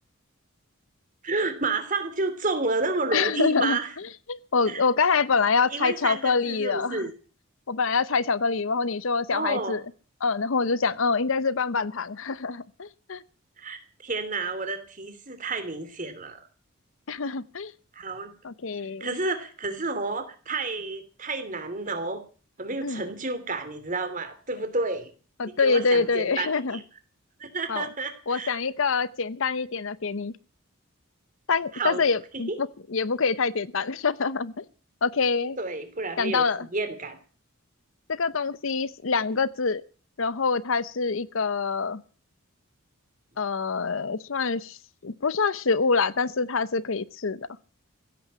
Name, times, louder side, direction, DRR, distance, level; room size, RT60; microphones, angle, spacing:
voice 1, 1.2-3.9 4.7-4.8 5.7-7.1 9.3-9.8 13.6-16.4 17.9-18.3 19.0-22.2 22.6-25.1 25.4-26.8 27.4-28.6 31.7-32.0 32.3-32.6 35.6-37.2, right 3 dB, 35° right, 2.8 m, -30 dB
voice 2, 3.1-7.1 7.7-9.8 10.2-13.2 17.1-17.7 18.4-19.1 22.8-23.0 25.4-26.8 27.7-27.9 28.3-30.3 31.5-34.6 35.0-35.6 36.2-36.7 38.1-39.8 40.2-42.0 43.4-44.8 45.0-47.4, left 4 dB, 65° left, 0.7 m, -26 dB
16.0 x 8.6 x 8.6 m
head